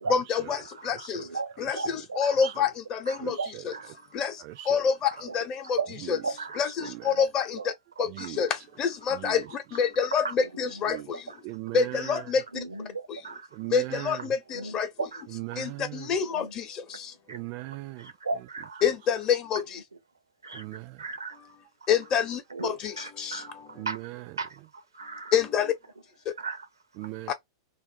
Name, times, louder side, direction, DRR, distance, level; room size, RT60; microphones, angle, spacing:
voice 1, 0.1-0.6 0.8-1.2 1.6-1.8 2.2-3.4 3.7-3.8 4.1-4.3 4.7-5.1 5.3-5.8 6.1-6.2 6.6-7.6 8.0-8.1 8.4-9.4 9.7-11.0 11.7-12.4 13.7-14.9 15.6-16.6 18.8-19.6 21.9-22.9 23.2-23.4 25.3-25.7 27.3-27.4, left 6 dB, 35° left, 0.8 m, -26 dB
voice 2, 0.6-2.5 3.1-4.2 5.1-5.4 5.6-6.7 7.1-7.3 7.5-7.7 8.0-8.3 10.1-11.4 12.1-12.2 12.5-13.5 14.5-15.2 15.5-15.6 16.2-16.5 17.3-17.4 18.0-18.9 20.4-21.4 21.8-21.9 22.5-24.0 24.4-25.4 26.4-26.7, right 4 dB, 90° right, 0.6 m, -37 dB
voice 3, 4.4-4.8 6.8-7.1 8.1-8.4 9.1-9.5 10.9-11.1 11.4-12.2 13.5-14.3 15.3-16.2 17.3-18.1 20.5-21.0 23.8-24.2 27.0-27.3, right 19 dB, 45° right, 0.3 m, -39 dB
2.5 x 2.1 x 3.5 m
hypercardioid pair, 100°, 2 cm